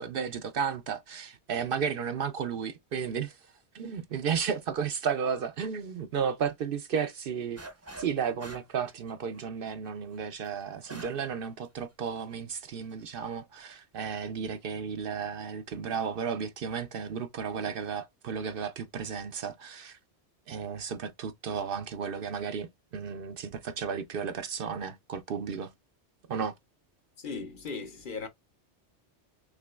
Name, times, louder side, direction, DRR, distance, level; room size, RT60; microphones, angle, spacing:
voice 1, 0.0-3.4 3.7-7.6 8.0-20.0 20.5-25.7 26.3-26.5, right 6 dB, 60° right, 0.7 m, -33 dB
sound 1, 7.6-8.1 8.4-11.3 11.6-11.7 12.3-12.7, right 2 dB, 15° right, 0.6 m, -46 dB
voice 2, 27.2-28.3, left 4 dB, 55° left, 0.7 m, -37 dB
6.0 x 2.9 x 2.3 m
omnidirectional pair, 1.1 m